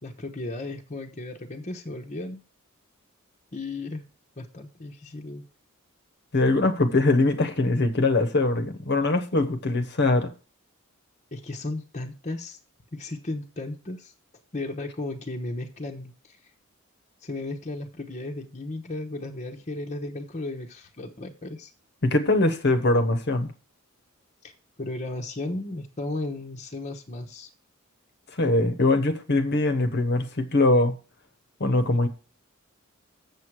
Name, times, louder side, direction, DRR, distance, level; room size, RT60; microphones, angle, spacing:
voice 1, 0.0-2.4 3.5-4.0 4.4-5.4 11.3-12.6 12.9-14.1 14.5-16.4 17.2-21.7 24.4-24.5 24.8-27.5, left 2 dB, 35° left, 1.1 m, -35 dB
voice 2, 6.3-10.3 22.0-23.5 28.4-30.9 31.6-32.1, left 2 dB, 55° left, 1.1 m, -22 dB
7.5 x 7.4 x 4.7 m
head